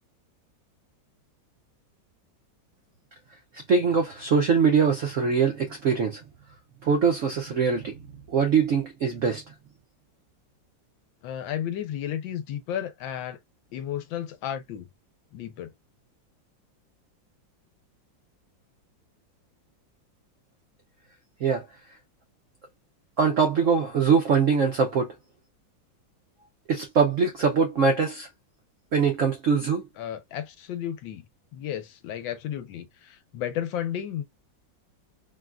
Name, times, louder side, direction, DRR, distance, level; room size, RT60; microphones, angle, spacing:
voice 1, 3.7-6.2 6.8-8.0 8.3-9.4 21.4-21.6 23.2-25.1 26.7-28.3 28.9-29.8, right 5 dB, 75° right, 0.7 m, -22 dB
voice 2, 11.2-13.4 13.7-14.9 15.3-15.7 30.0-31.2 31.5-34.2, left 10 dB, 85° left, 1.4 m, -33 dB
3.7 x 2.3 x 2.4 m
omnidirectional pair, 2.1 m